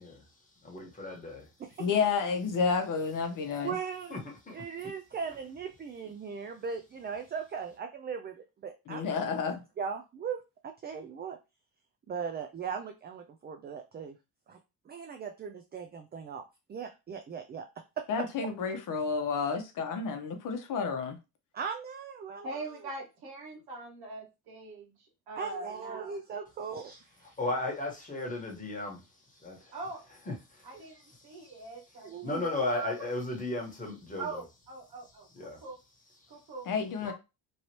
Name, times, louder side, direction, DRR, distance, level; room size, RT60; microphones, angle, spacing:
voice 1, 0.0-1.6 4.1-4.9 6.3-6.5 27.2-29.8 30.2-34.4 35.0-35.7 36.2-36.5 37.0-37.1, left 2 dB, 20° left, 1.3 m, -37 dB
voice 2, 1.8-3.7 8.9-9.6 18.1-21.2 36.7-37.1, left 5 dB, 55° left, 0.8 m, -30 dB
voice 3, 3.6-4.1 4.5-9.1 9.8-11.4 12.1-14.2 14.5-14.6 14.9-17.7 18.0-18.2 21.5-22.6 25.4-27.3 32.0-32.4, right 6 dB, 25° right, 0.4 m, -38 dB
voice 4, 22.4-26.2 29.7-30.0 30.6-32.3 32.7-32.9 34.2-35.8 36.3-36.7 37.0-37.1, right 3 dB, 75° right, 1.5 m, -42 dB
3.1 x 2.7 x 2.9 m
cardioid pair, 100°, 38 cm